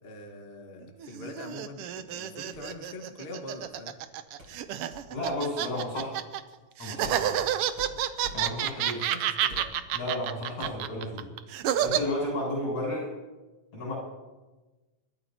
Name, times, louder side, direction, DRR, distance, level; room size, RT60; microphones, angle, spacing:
voice 1, 0.0-4.0 8.8-9.7, left 2 dB, 30° left, 2 dB, 1.1 m, -44 dB
sound 1, 1.0-6.4 6.8-12.0, right 11 dB, 80° right, 1.3 m, -29 dB
sound 2, 2.5-2.8 4.4-8.7 9.4-9.9 10.2-10.3 10.6-11.2 11.9-12.0, equal, 40° right, 4.9 m, -47 dB
voice 2, 5.1-6.2 6.8-7.4 8.3-9.1 9.9-11.3 11.8-13.1 13.7-14.0, left 1 dB, 75° left, -3 dB, 8.0 m, -32 dB
28.5 x 13.0 x 2.9 m, 1.2 s
omnidirectional pair, 3.4 m